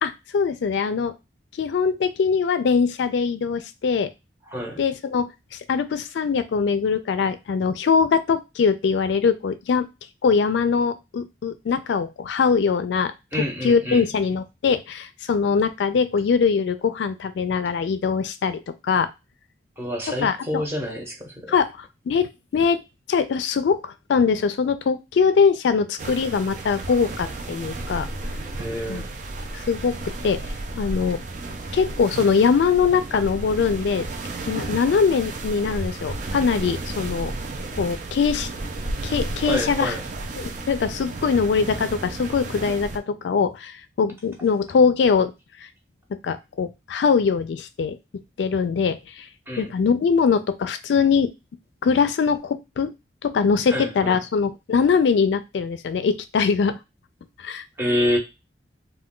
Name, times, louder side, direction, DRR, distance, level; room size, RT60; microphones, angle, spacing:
voice 1, 0.0-1.1 1.6-4.1 4.8-5.3 5.7-9.9 10.2-19.1 20.2-20.7 21.5-22.8 23.1-28.1 28.9-29.0 29.5-30.4 30.8-31.2 31.7-34.1 34.5-37.3 37.8-38.5 39.0-39.9 40.4-45.3 46.1-48.0 48.4-49.3 49.6-51.3 51.8-52.9 53.2-56.8 57.4-57.6, left 5 dB, 75° left, 11 dB, 0.3 m, -22 dB
voice 2, 4.5-4.8 13.3-14.0 19.8-21.5 28.6-29.1 39.4-40.0 49.5-49.7 53.7-54.2 57.8-58.2, left 1 dB, 15° right, 0 dB, 0.7 m, -27 dB
sound 1, 26.0-43.0, right 2 dB, 40° right, 0.4 m, -33 dB
2.2 x 2.2 x 3.6 m, 0.24 s
head